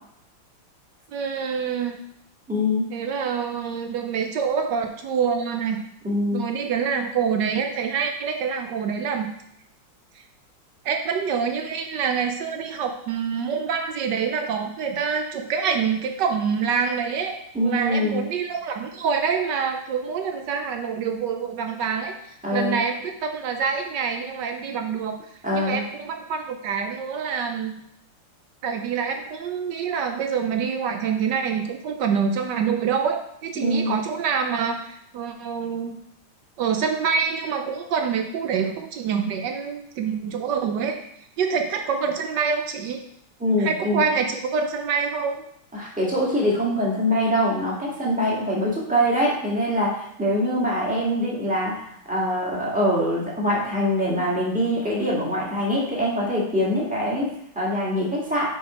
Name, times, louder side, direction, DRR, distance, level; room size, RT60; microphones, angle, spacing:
voice 1, 1.1-2.0 2.9-5.8 6.3-9.3 10.8-22.2 22.5-25.2 25.5-27.7 28.6-36.0 36.6-41.0 41.4-43.0 43.6-45.4, right 6 dB, 70° right, 5 dB, 1.1 m, -26 dB
voice 2, 2.5-2.9 6.0-6.4 17.5-18.2 22.4-22.8 25.4-25.8 33.6-34.0 43.4-44.0 45.7-58.5, equal, 5° right, -5 dB, 1.5 m, -24 dB
6.3 x 5.0 x 4.9 m, 0.73 s
omnidirectional pair, 2.4 m